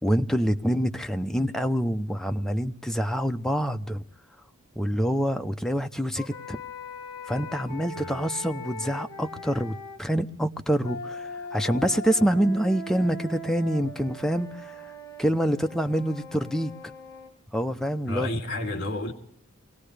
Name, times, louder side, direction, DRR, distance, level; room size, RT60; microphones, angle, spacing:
voice 1, 0.0-4.0 4.8-6.6 7.3-14.8 15.2-16.7 17.5-18.3, equal, ahead, 0.6 m, -26 dB
sound 1, 6.2-10.0 10.8-17.3, left 2 dB, 20° left, 2.9 m, -40 dB
voice 2, 7.9-8.3 18.1-19.1, left 1 dB, 55° left, 3.0 m, -31 dB
25.0 x 17.5 x 3.3 m
head